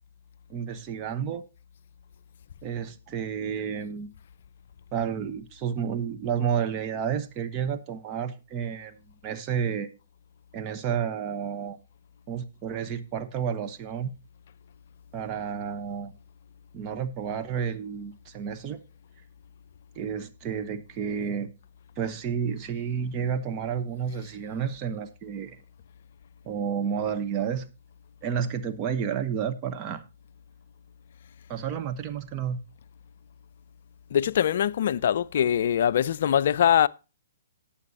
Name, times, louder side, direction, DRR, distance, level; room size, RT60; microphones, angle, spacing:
voice 1, 0.5-1.4 2.6-4.1 4.9-8.9 9.2-9.9 10.5-11.8 12.3-14.1 15.1-16.1 16.7-18.8 19.9-21.5 22.0-25.6 26.4-27.7 28.2-30.0 31.5-32.6, right 7 dB, 30° right, 1.1 m, -31 dB
voice 2, 34.1-36.9, left 9 dB, 55° left, 0.4 m, -22 dB
18.5 x 7.1 x 2.9 m
figure-of-eight pair, 120°, 0 cm